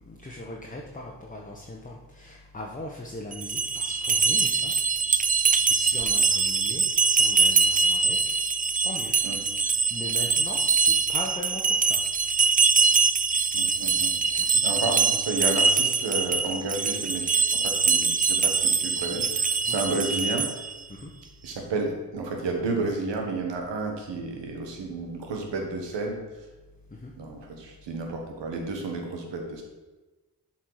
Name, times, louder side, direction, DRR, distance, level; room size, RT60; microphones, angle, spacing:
voice 1, 0.1-4.7 5.7-8.3 8.8-9.1 9.6-12.0 19.7-19.8 21.0-21.1 27.0-27.1, left 2 dB, 20° left, -2 dB, 1.1 m, -39 dB
sound 1, 3.3-20.8, right 5 dB, 20° right, 0.3 m, -23 dB
voice 2, 13.5-20.5 21.4-26.2 27.2-29.6, right 3 dB, 85° right, 2 dB, 1.4 m, -31 dB
7.3 x 4.5 x 4.8 m, 1.2 s
cardioid pair, 50°, 42 cm